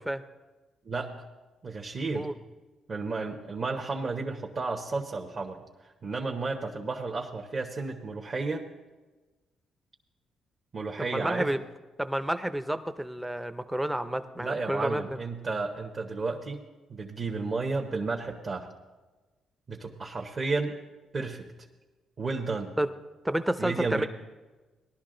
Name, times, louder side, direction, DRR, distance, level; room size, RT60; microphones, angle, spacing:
voice 1, 1.6-2.3 2.9-5.6 6.0-8.6 10.7-11.5 14.4-16.6 16.9-18.7 19.7-20.8 21.1-21.5 22.2-22.7 23.6-24.1, right 3 dB, 40° right, 1 dB, 1.1 m, -32 dB
voice 2, 11.1-11.6 12.0-15.2 22.8-22.9 23.2-24.1, right 1 dB, 5° right, 10 dB, 0.6 m, -30 dB
18.5 x 11.5 x 3.9 m, 1.2 s
cardioid pair, 90°, 0 cm